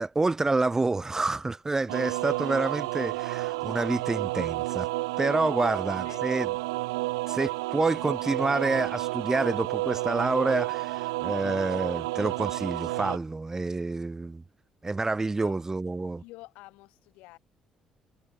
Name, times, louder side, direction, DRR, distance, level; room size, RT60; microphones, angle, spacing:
voice 1, 0.0-4.9 5.2-6.5 7.3-14.4 14.8-16.2, right 3 dB, 20° right, 0.7 m, -28 dB
sound 1, 1.9-13.2, right 22 dB, 80° right, 0.4 m, -31 dB
voice 2, 6.0-6.5 15.4-15.6 16.2-17.4, left 20 dB, 70° left, 7.7 m, -48 dB
hypercardioid pair, 50°, 2 cm